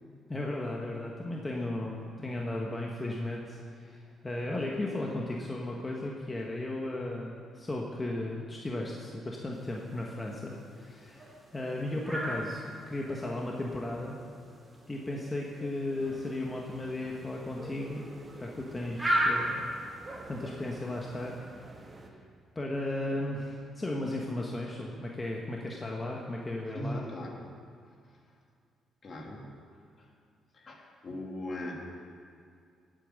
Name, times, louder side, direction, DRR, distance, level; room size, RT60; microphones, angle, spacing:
voice 1, 0.3-11.3 11.5-14.2 14.9-18.0 18.4-19.6 20.3-21.3 21.7-22.2 22.5-27.0, left 1 dB, 20° left, -2 dB, 1.6 m, -35 dB
sound 1, 9.5-21.4, right 1 dB, 5° right, 4.0 m, -38 dB
sound 2, 16.0-22.1, right 2 dB, 25° right, 1.9 m, -48 dB
voice 2, 26.7-27.4 29.0-29.6 30.0-30.1 30.5-31.8, left 1 dB, 45° left, 0 dB, 3.0 m, -39 dB
17.5 x 9.0 x 6.7 m, 2.2 s
cardioid pair, 90°, 0 cm